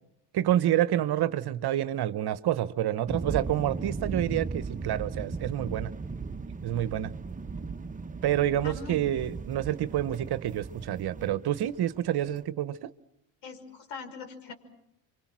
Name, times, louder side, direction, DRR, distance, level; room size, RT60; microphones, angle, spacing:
voice 1, 0.3-5.9 6.6-7.1 8.2-12.9, right 12 dB, 50° right, 1.0 m, -28 dB
sound 1, 3.1-12.4, right 4 dB, 15° right, 0.9 m, -37 dB
voice 2, 8.6-8.9 13.4-14.5, left 4 dB, 65° left, 5.7 m, -42 dB
28.5 x 25.0 x 6.1 m
supercardioid pair, 90°, 50 cm